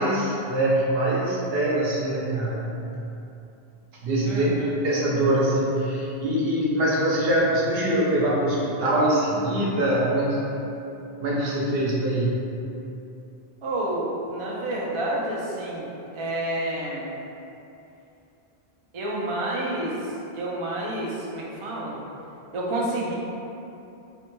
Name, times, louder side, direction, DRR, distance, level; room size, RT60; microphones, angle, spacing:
voice 1, 0.0-2.8 4.0-10.7 11.2-12.4, right 1 dB, 70° right, -5 dB, 0.8 m, -23 dB
voice 2, 4.3-4.7 13.6-15.9 16.1-17.1 18.9-20.0 20.3-22.0 22.5-23.1, right 1 dB, 55° right, -4 dB, 0.3 m, -29 dB
3.2 x 2.1 x 3.0 m, 2.8 s
omnidirectional pair, 1.1 m